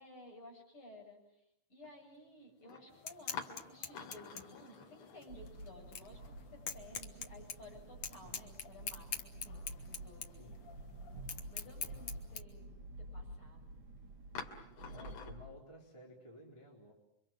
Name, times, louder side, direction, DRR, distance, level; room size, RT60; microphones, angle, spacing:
voice 1, 0.0-1.4 1.7-10.3 11.5-13.7, left 1 dB, 30° left, 1 dB, 8.1 m, -56 dB
sound 1, 1.8-1.9 2.6-2.8 3.3-6.2 6.5-6.6 8.0-8.7 9.2-9.3 9.9-10.0 14.4-15.3, left 6 dB, 85° left, 4.8 m, -48 dB
sound 2, 2.9-12.4, left 7 dB, 55° left, 1.6 m, -45 dB
sound 3, 5.3-15.5, right 1 dB, 45° right, 3.5 m, -50 dB
voice 2, 14.9-16.9, equal, 5° left, -2 dB, 3.9 m, -55 dB
29.0 x 25.0 x 7.7 m, 0.80 s
omnidirectional pair, 4.7 m